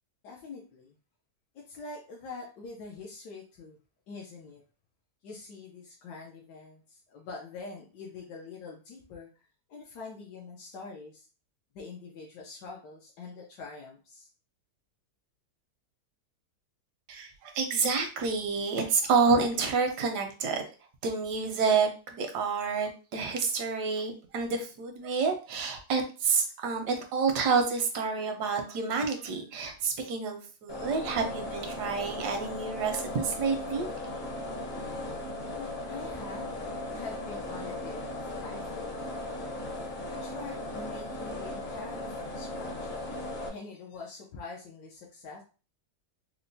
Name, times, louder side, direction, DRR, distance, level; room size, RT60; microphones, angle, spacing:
voice 1, 0.2-1.0 1.6-3.8 4.1-4.6 5.2-11.3 11.7-14.3 35.5-36.5 36.9-39.2 40.1-42.9 43.5-45.4, left 4 dB, 90° left, -2 dB, 1.3 m, -44 dB
voice 2, 17.1-20.6 21.0-33.9, right 5 dB, 80° right, 4 dB, 1.3 m, -29 dB
sound 1, 30.7-43.5, left 2 dB, 45° left, 0.6 m, -37 dB
4.5 x 2.1 x 2.6 m, 0.34 s
omnidirectional pair, 1.8 m